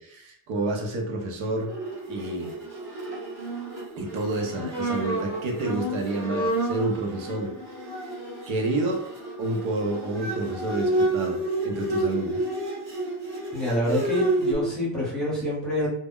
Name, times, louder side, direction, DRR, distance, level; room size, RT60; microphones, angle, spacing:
voice 1, 0.0-1.7 2.1-2.6 4.0-7.5 8.5-9.0 9.4-12.4, right 2 dB, 80° right, 1 dB, 0.8 m, -29 dB
Bowed string instrument, 1.6-14.6, right 2 dB, 35° right, 1.0 m, -30 dB
voice 2, 13.5-15.9, left 1 dB, ahead, -7 dB, 0.9 m, -27 dB
2.2 x 2.1 x 3.5 m, 0.73 s
cardioid pair, 165°, 47 cm